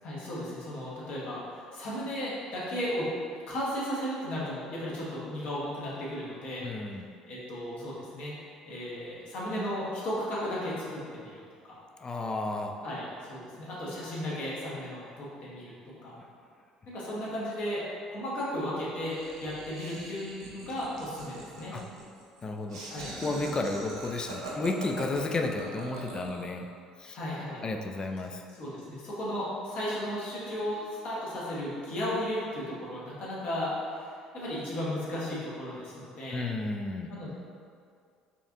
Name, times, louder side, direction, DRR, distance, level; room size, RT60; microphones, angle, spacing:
voice 1, 0.0-3.1 3.5-6.7 7.3-8.4 8.7-11.8 12.8-16.2 16.9-17.8 18.1-21.8 22.8-23.1 27.1-27.6 28.6-36.4 37.1-37.3, equal, 60° left, -6 dB, 1.1 m, -35 dB
voice 2, 6.6-7.1 12.0-12.8 21.7-21.8 22.4-26.7 27.0-27.2 27.6-28.4 36.3-37.1, left 2 dB, 30° left, 4 dB, 0.3 m, -32 dB
Laughter, 19.0-26.6, right 2 dB, 85° right, 0.5 m, -42 dB
4.1 x 2.5 x 2.5 m, 2.2 s
hypercardioid pair, 60°, 3 cm